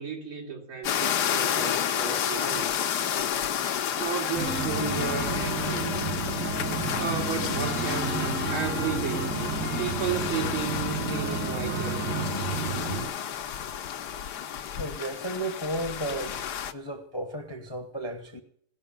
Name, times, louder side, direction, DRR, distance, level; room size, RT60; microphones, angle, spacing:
voice 1, 0.0-2.7 4.0-6.1 6.9-9.3 9.8-12.5, right 6 dB, 70° right, 3.3 m, -34 dB
sound 1, 0.8-16.7, left 9 dB, 60° left, 1.2 m, -31 dB
sound 2, 4.3-13.0, right 3 dB, 85° right, 7.7 m, -32 dB
sound 3, 4.4-13.2, right 1 dB, 15° right, 0.3 m, -38 dB
voice 2, 14.8-16.4 16.7-18.4, right 1 dB, 15° left, 1.0 m, -33 dB
18.0 x 6.3 x 9.0 m
omnidirectional pair, 2.4 m